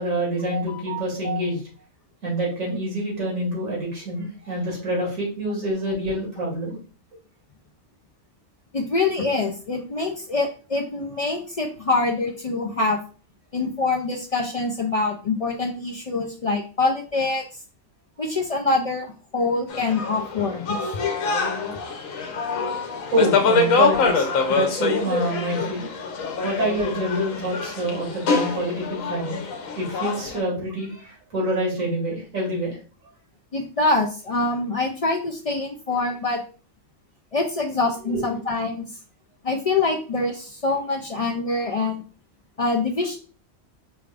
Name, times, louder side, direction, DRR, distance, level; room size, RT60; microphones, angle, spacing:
voice 1, 0.0-1.6 2.2-6.8 23.1-25.9 26.4-29.4 29.8-32.8 38.1-38.2, right 1 dB, 90° right, -3 dB, 2.4 m, -26 dB
voice 2, 8.7-13.0 13.5-17.4 18.2-20.8 33.5-36.4 37.3-38.9 39.4-42.0 42.6-43.2, left 3 dB, 70° left, 1 dB, 0.3 m, -25 dB
sound 1, 19.7-30.4, left 4 dB, 85° left, 1.2 m, -25 dB
5.0 x 2.5 x 3.3 m, 0.38 s
omnidirectional pair, 1.3 m